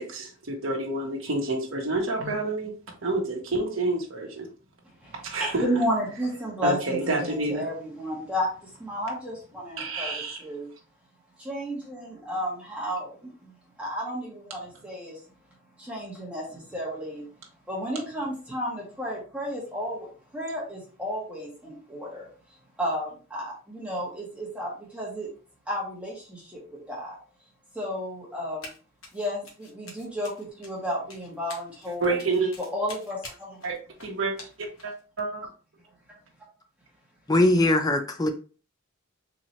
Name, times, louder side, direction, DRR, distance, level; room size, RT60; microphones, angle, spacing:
voice 1, 0.0-2.7 3.0-4.5 5.2-5.6 6.6-7.6 9.8-10.4 31.9-32.5 33.6-35.5, right 2 dB, 65° right, 1.0 m, -29 dB
voice 2, 5.0-10.7 11.4-13.5 13.8-15.2 15.8-17.2 17.7-20.1 20.3-22.3 22.8-25.3 25.7-27.2 27.7-28.7 29.1-32.1 32.7-33.6 36.1-36.2, equal, 5° right, 1.4 m, -32 dB
Run, 28.6-28.8 29.0-35.0, left 3 dB, 75° left, 1.3 m, -46 dB
voice 3, 37.3-38.3, left 1 dB, 20° left, 0.4 m, -21 dB
4.0 x 2.9 x 3.0 m
head